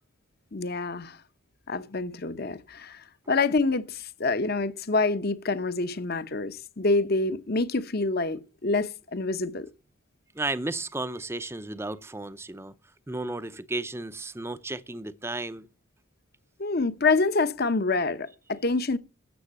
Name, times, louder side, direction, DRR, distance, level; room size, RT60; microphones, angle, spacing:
voice 1, 0.5-1.2 1.7-9.7 16.6-19.0, left 3 dB, 45° left, 0.9 m, -27 dB
voice 2, 10.4-12.7 13.1-15.7, right 2 dB, 10° right, 0.6 m, -33 dB
13.5 x 7.8 x 7.4 m
head